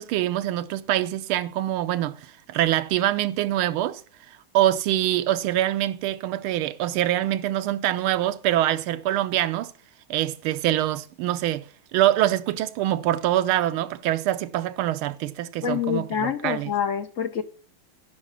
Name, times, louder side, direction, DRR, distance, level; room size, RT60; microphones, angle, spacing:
voice 1, 0.0-4.0 4.5-9.7 10.1-16.7, right 13 dB, 85° right, 1.5 m, -24 dB
voice 2, 15.6-17.4, left 8 dB, 65° left, 0.7 m, -26 dB
10.5 x 5.0 x 7.2 m
omnidirectional pair, 2.3 m